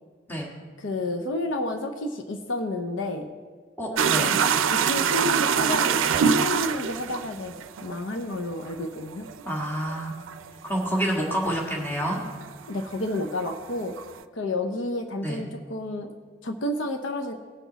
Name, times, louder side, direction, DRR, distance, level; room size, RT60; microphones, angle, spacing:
voice 1, 0.8-3.3 3.9-7.5 7.8-9.3 12.7-14.0 14.3-16.1 16.4-17.3, left 2 dB, 75° left, 6 dB, 0.7 m, -31 dB
voice 2, 3.8-4.4 9.4-10.1 10.6-12.2 15.2-15.4, equal, 10° left, -2 dB, 1.6 m, -28 dB
sound 1, 4.0-12.5 12.8-14.2, right 7 dB, 90° right, 0.5 m, -25 dB
18.5 x 6.2 x 4.0 m, 1.5 s
head